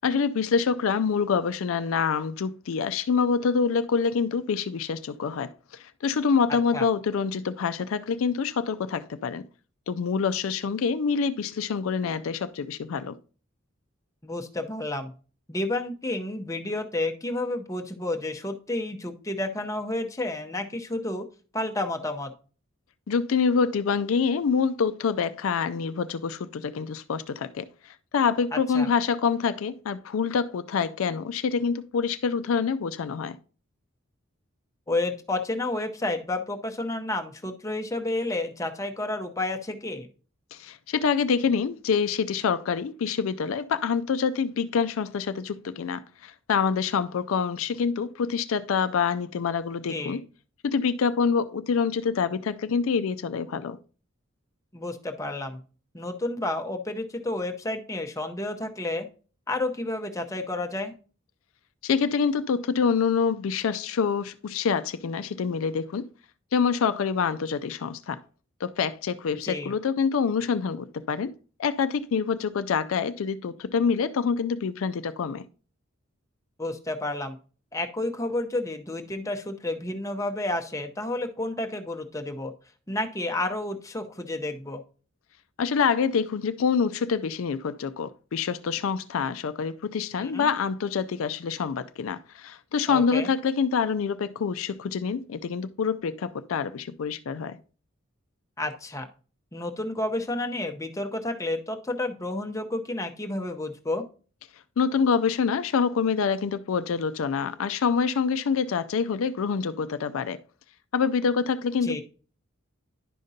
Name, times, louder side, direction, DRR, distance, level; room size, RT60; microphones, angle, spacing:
voice 1, 0.0-5.5 5.8-9.4 9.9-13.2 23.1-33.4 40.5-50.2 50.6-53.8 61.8-66.1 66.5-68.2 68.6-71.3 71.6-75.4 85.6-97.6 104.8-110.4 110.9-112.0, left 6 dB, 75° left, 0.4 m, -26 dB
voice 2, 6.5-6.8 14.2-15.1 15.5-21.2 21.5-22.3 28.5-28.9 34.9-40.1 49.9-50.2 54.7-55.6 55.9-59.1 59.5-60.9 69.4-69.7 76.6-77.4 77.7-82.5 82.9-84.8 90.2-90.5 92.9-93.3 98.6-99.1 99.5-104.0 111.8-112.0, left 2 dB, 15° left, 0.7 m, -30 dB
11.0 x 5.1 x 2.7 m
head